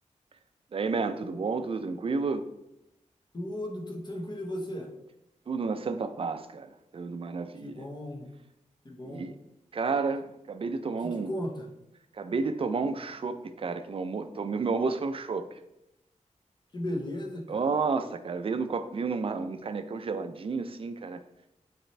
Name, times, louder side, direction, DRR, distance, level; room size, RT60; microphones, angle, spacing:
voice 1, 0.7-2.4 5.5-7.9 9.0-9.3 9.7-11.3 12.1-15.6 17.5-21.2, right 4 dB, 45° right, 9 dB, 0.5 m, -31 dB
voice 2, 3.3-4.9 7.6-8.3 8.8-9.3 10.9-11.7 16.7-17.7, left 1 dB, 35° left, 2 dB, 1.2 m, -36 dB
9.0 x 4.3 x 3.3 m, 0.87 s
wide cardioid pair, 160°, 13 cm